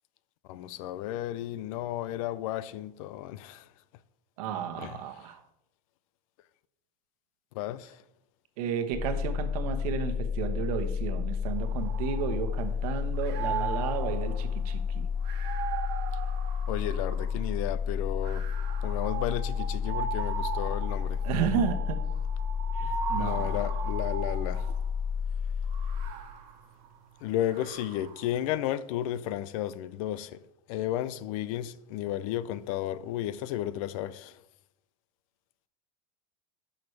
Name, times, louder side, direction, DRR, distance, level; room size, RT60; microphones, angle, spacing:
voice 1, 0.4-3.7 4.8-5.0 7.5-8.0 16.7-18.5 18.8-21.2 23.2-24.8 27.2-30.4 30.7-34.4, left 12 dB, 60° left, 0.5 m, -33 dB
voice 2, 4.4-5.4 8.6-15.1 21.2-22.0 22.7-23.7, right 7 dB, 70° right, 1.1 m, -33 dB
sound 1, 8.9-26.1, left 6 dB, 5° right, 0.4 m, -31 dB
sound 2, 11.6-12.8 13.1-17.5 18.2-24.9 25.7-28.3, right 7 dB, 50° right, 1.4 m, -38 dB
11.0 x 6.3 x 3.2 m
supercardioid pair, 155°, 20 cm